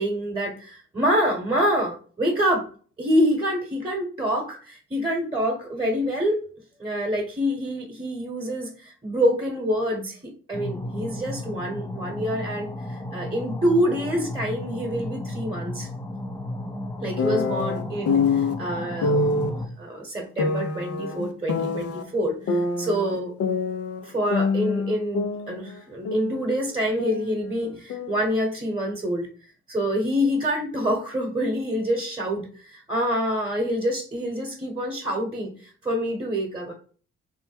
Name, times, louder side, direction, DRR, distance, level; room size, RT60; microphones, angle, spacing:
voice 1, 0.0-2.6 3.0-6.4 6.8-10.2 10.5-15.9 17.0-23.3 24.0-29.3 29.7-36.7, equal, 15° right, 0 dB, 1.1 m, -26 dB
sound 1, 10.5-19.7, left 1 dB, 10° left, 0.6 m, -34 dB
sound 2, 17.2-18.5 19.0-19.5 20.4-22.0 22.5-24.0 24.3-26.5 26.7-28.3, left 4 dB, 55° left, 0.6 m, -26 dB
3.3 x 2.0 x 3.3 m, 0.41 s
hypercardioid pair, 45°, 30 cm